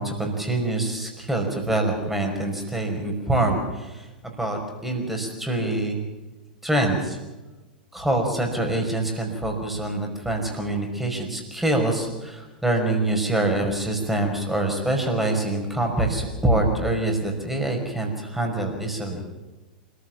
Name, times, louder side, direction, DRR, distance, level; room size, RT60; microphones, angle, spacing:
voice 1, 0.0-6.0 6.6-7.2 7.9-19.3, right 2 dB, 5° right, 2 dB, 5.4 m, -25 dB
27.0 x 15.0 x 7.4 m, 1.1 s
figure-of-eight pair, 90°, 5 cm